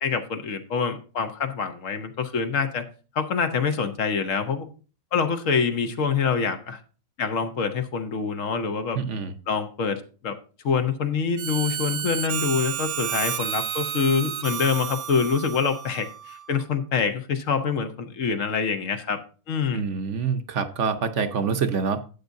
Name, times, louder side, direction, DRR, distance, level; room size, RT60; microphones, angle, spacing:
voice 1, 0.0-2.8 3.1-4.7 5.1-6.8 7.2-9.0 9.5-10.4 10.6-19.2 19.5-19.8, left 5 dB, 65° left, 1.2 m, -25 dB
voice 2, 8.9-9.3 19.7-22.0, right 6 dB, 60° right, 1.0 m, -26 dB
Harmonica, 11.4-16.5, right 10 dB, 85° right, 1.3 m, -31 dB
12.0 x 8.2 x 2.6 m
omnidirectional pair, 1.5 m